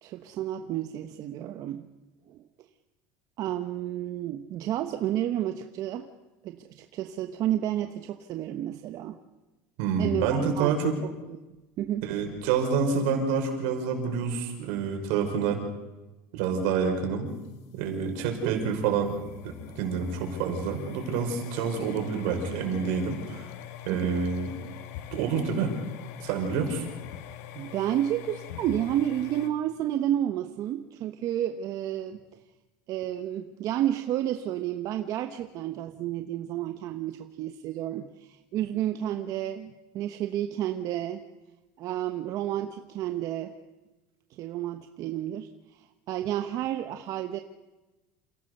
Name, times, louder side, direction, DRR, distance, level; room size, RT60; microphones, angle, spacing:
voice 1, 0.0-1.9 2.3-2.4 3.4-6.1 6.4-9.2 10.0-10.7 11.0-11.1 11.8-12.0 18.4-18.6 23.9-24.2 27.5-32.2 32.9-41.2 41.8-43.5 44.3-45.5 46.1-47.4, right 12 dB, 50° right, 7 dB, 1.1 m, -31 dB
voice 2, 9.8-10.9 12.0-15.6 16.3-17.3 17.7-19.1 19.4-23.5 23.9-24.5 25.1-25.7 26.2-26.9, right 6 dB, 80° right, 2 dB, 5.5 m, -28 dB
sound 1, 17.3-29.5, left 11 dB, 90° left, 1.9 m, -43 dB
28.5 x 17.0 x 6.7 m, 1.1 s
cardioid pair, 140°, 8 cm